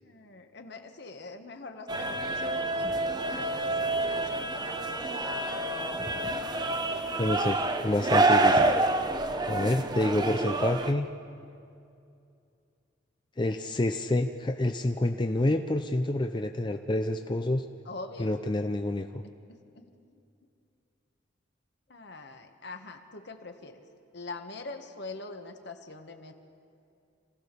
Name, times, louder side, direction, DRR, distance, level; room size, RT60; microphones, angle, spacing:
voice 1, 0.0-2.9 3.3-5.5 5.8-5.9 17.8-18.4 18.6-18.7 19.7-20.2 21.9-23.8 24.1-26.3, left 3 dB, 60° left, 6 dB, 1.5 m, -44 dB
sound 1, 1.9-10.9, right 2 dB, 20° right, 0.8 m, -27 dB
voice 2, 7.2-8.6 9.5-11.1 13.4-17.6 18.2-19.2, left 1 dB, 25° left, 6 dB, 0.5 m, -28 dB
26.5 x 16.5 x 6.8 m, 2.5 s
head